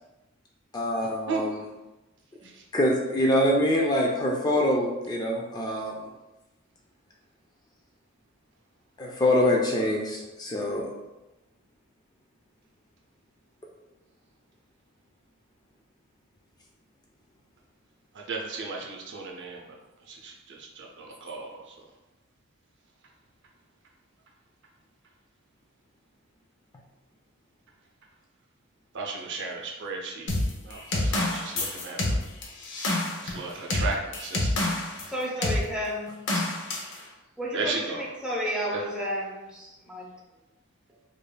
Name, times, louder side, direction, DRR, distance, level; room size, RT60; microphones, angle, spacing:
voice 1, 0.7-1.6 2.7-6.1 9.0-10.9, left 1 dB, 20° left, -1 dB, 0.4 m, -25 dB
voice 2, 18.1-19.7 20.0-21.8 28.9-30.3 30.6-32.2 33.2-34.7 36.8-37.0 37.5-38.0 38.7-38.9, right 3 dB, 60° right, 0 dB, 0.6 m, -35 dB
sound 1, 30.3-35.1 35.4-35.6 36.3-36.9, left 2 dB, 60° left, 0.7 m, -27 dB
voice 3, 35.1-36.5 37.4-40.1, equal, 5° right, -4 dB, 0.7 m, -32 dB
5.1 x 2.5 x 2.2 m, 1.0 s
head